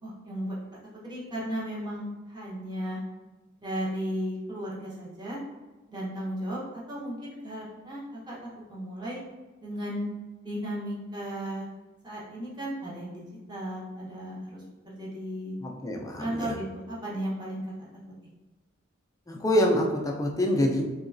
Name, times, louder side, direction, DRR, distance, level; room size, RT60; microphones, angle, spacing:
voice 1, 0.0-3.0 3.6-5.4 5.9-9.2 9.6-10.1 10.4-11.7 12.0-15.5 16.2-17.9, equal, 20° right, -6 dB, 0.9 m, -35 dB
voice 2, 15.6-16.6 19.3-20.8, equal, 15° left, 1 dB, 0.4 m, -26 dB
3.7 x 3.0 x 2.5 m, 1.2 s
head